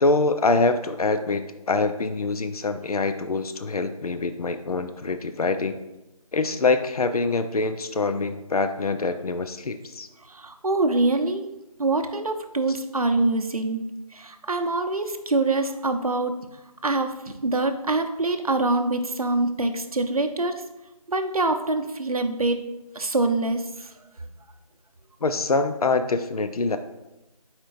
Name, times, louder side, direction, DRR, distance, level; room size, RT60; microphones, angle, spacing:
voice 1, 0.0-5.8 6.3-10.1 25.2-26.8, left 3 dB, 70° left, 9 dB, 0.5 m, -24 dB
voice 2, 10.3-11.5 11.8-13.8 14.1-16.4 16.8-17.1 17.4-20.6 21.1-22.6 22.9-23.9, right 2 dB, 65° right, 5 dB, 0.7 m, -24 dB
8.5 x 4.4 x 2.6 m, 0.97 s
figure-of-eight pair, 175°, 20 cm